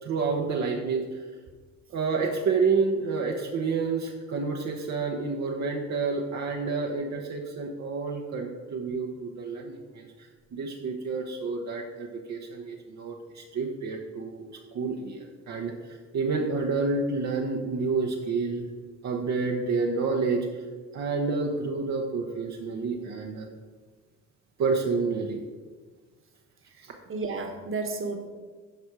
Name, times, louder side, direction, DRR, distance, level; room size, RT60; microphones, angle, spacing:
voice 1, 0.0-1.2 1.9-18.7 19.0-20.6 20.9-23.5 24.6-25.4 26.8-26.9, right 4 dB, 65° right, 0 dB, 1.0 m, -29 dB
voice 2, 26.8-28.3, right 3 dB, 45° right, 4 dB, 1.4 m, -33 dB
12.0 x 4.4 x 4.8 m, 1.4 s
cardioid pair, 90°, 30 cm